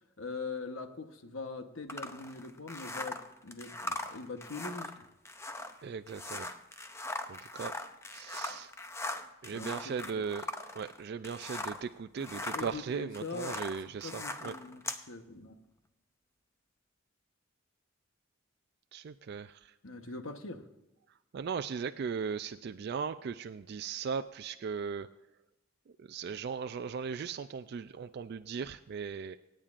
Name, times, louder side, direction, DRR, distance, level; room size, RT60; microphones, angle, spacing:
voice 1, 0.2-4.9 9.5-10.3 12.2-13.6 14.0-15.6 19.8-20.6, left 3 dB, 80° left, 6 dB, 1.1 m, -42 dB
sound 1, 1.9-11.9 12.2-15.0, left 2 dB, 15° left, 0.6 m, -40 dB
voice 2, 5.8-6.5 7.3-7.7 8.1-8.7 9.4-10.4 10.8-14.5 18.9-19.7 21.3-25.1 26.0-29.4, right 6 dB, 55° right, 9 dB, 0.3 m, -38 dB
25.5 x 8.9 x 2.5 m, 0.98 s
head